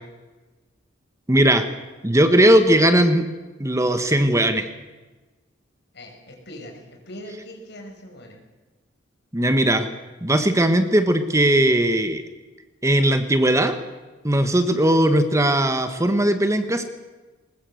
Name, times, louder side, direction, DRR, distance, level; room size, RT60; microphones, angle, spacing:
voice 1, 1.3-1.6 2.0-3.3 3.6-4.7 9.3-9.9 10.2-12.2 12.8-13.8 14.2-16.8, right 1 dB, 15° right, 8 dB, 1.3 m, -18 dB
voice 2, 5.9-8.4, equal, 60° left, 2 dB, 5.9 m, -41 dB
20.5 x 20.0 x 7.8 m, 1.2 s
head